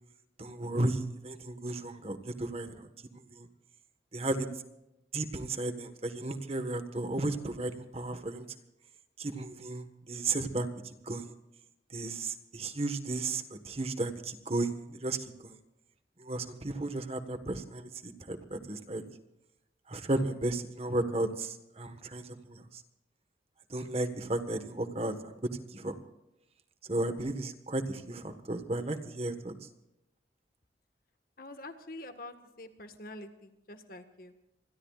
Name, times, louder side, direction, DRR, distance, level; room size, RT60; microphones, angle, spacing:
voice 1, 0.4-2.9 3.1-3.5 4.1-4.5 5.1-8.4 9.2-10.7 11.0-11.3 11.9-15.2 15.4-15.6 16.2-19.0 19.9-22.8 23.7-25.1 25.7-25.9 26.9-29.5, right 2 dB, 35° right, 8 dB, 1.5 m, -34 dB
voice 2, 31.4-34.4, left 2 dB, 55° left, 8 dB, 1.6 m, -46 dB
27.0 x 21.5 x 2.5 m, 0.90 s
head